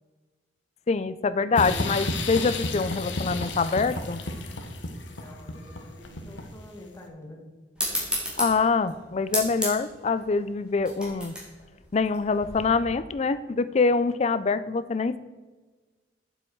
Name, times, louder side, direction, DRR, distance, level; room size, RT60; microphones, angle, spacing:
voice 1, 0.9-4.2 8.4-11.4 11.9-15.2, left 4 dB, 35° left, 14 dB, 0.4 m, -25 dB
sound 1, 1.6-6.7, left 2 dB, 75° left, 1.2 m, -32 dB
voice 2, 5.1-7.4, left 1 dB, 15° left, 0 dB, 1.7 m, -47 dB
sound 2, 7.7-12.8, equal, 5° right, 3.0 m, -33 dB
8.7 x 7.7 x 4.6 m, 1.3 s
head